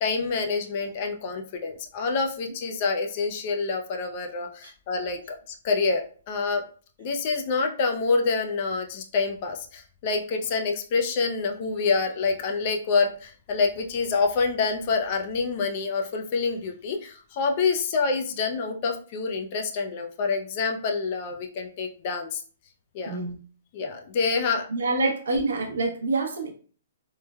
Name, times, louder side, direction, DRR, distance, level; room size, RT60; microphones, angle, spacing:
voice 1, 0.0-5.2 5.5-6.6 7.0-22.4 22.9-23.2 23.7-24.7, left 4 dB, 30° left, 4 dB, 0.3 m, -27 dB
voice 2, 23.1-23.4 24.7-26.5, right 3 dB, 85° right, 2 dB, 0.6 m, -26 dB
3.0 x 2.0 x 2.2 m, 0.42 s
hypercardioid pair, 170°, 0 cm